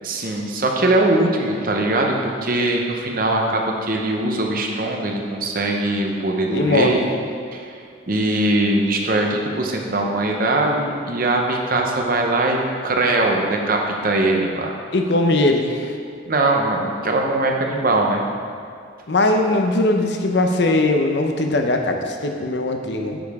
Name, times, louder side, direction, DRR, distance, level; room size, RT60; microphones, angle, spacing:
voice 1, 0.0-7.0 7.5-7.7 8.1-14.7 16.3-18.2, right 2 dB, 50° right, 1 dB, 0.9 m, -21 dB
voice 2, 6.5-7.0 14.9-16.0 19.1-23.2, left 2 dB, 65° left, 4 dB, 0.8 m, -20 dB
8.8 x 6.9 x 3.6 m, 2.2 s
head